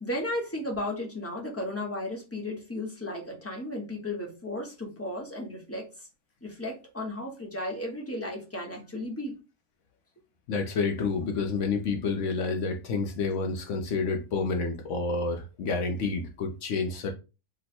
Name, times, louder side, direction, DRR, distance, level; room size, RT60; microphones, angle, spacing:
voice 1, 0.0-5.9 6.4-9.4, left 1 dB, 15° left, 0.7 m, -34 dB
voice 2, 10.5-17.1, left 4 dB, 65° left, 0.9 m, -29 dB
3.0 x 2.0 x 4.1 m
omnidirectional pair, 1.5 m